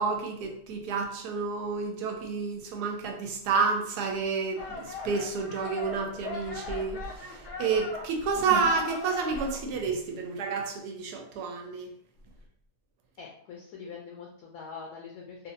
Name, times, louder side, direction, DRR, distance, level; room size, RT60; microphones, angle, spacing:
voice 1, 0.0-11.9, right 5 dB, 75° right, 3 dB, 1.1 m, -30 dB
sound 1, 4.6-9.6, left 3 dB, 90° left, 1.5 m, -39 dB
voice 2, 13.2-15.5, left 5 dB, 70° left, -1 dB, 0.9 m, -43 dB
3.0 x 2.5 x 2.6 m, 0.65 s
omnidirectional pair, 1.8 m